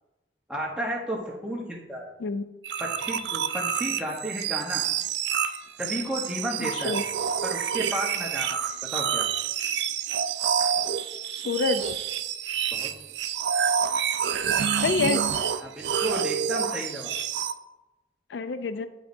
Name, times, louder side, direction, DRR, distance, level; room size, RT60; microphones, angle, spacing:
voice 1, 0.5-2.1 2.8-4.8 5.8-7.0 7.4-8.6 8.9-9.3 12.7-12.9 15.6-17.2, right 1 dB, 5° right, -3 dB, 0.9 m, -32 dB
sound 1, 2.6-17.5, right 8 dB, 65° right, 0.3 m, -28 dB
voice 2, 6.6-7.0 11.3-11.9 14.8-15.2 18.3-18.9, left 4 dB, 65° left, 11 dB, 0.4 m, -27 dB
10.0 x 4.1 x 2.6 m, 1.0 s
head